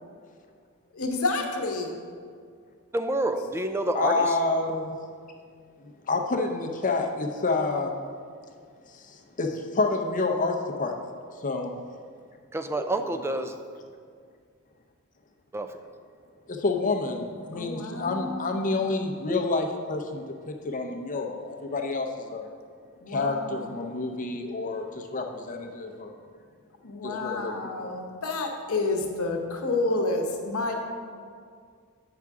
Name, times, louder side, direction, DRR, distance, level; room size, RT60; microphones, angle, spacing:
voice 1, 0.9-2.0 17.5-18.8 23.0-23.7 26.8-30.7, left 2 dB, 70° left, 2 dB, 1.0 m, -29 dB
voice 2, 2.9-4.4 12.5-13.6 15.5-15.8, right 1 dB, 10° right, 8 dB, 0.3 m, -28 dB
voice 3, 3.9-4.9 5.8-8.0 8.9-11.1 11.4-11.7 16.5-22.5 23.1-26.2 27.0-27.9, left 3 dB, 35° left, 3 dB, 0.6 m, -29 dB
8.7 x 5.8 x 3.6 m, 2.1 s
head